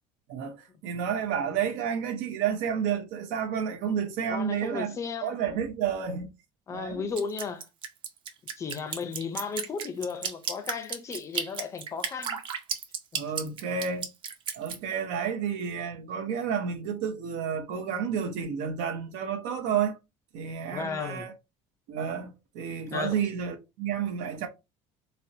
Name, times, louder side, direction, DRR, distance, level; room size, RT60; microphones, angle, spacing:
voice 1, 0.3-5.0 5.2-6.3 6.7-7.0 13.1-14.1 14.5-20.0 20.3-21.3 21.9-24.5, right 7 dB, 85° right, 0.6 m, -30 dB
voice 2, 4.3-5.4 6.7-7.7 8.6-12.4 13.1-13.6 20.7-21.3 22.9-23.2, left 5 dB, 25° left, 0.5 m, -35 dB
Drip, 7.2-14.8, right 7 dB, 40° right, 0.6 m, -33 dB
4.1 x 2.0 x 2.7 m
cardioid pair, 165°, 13 cm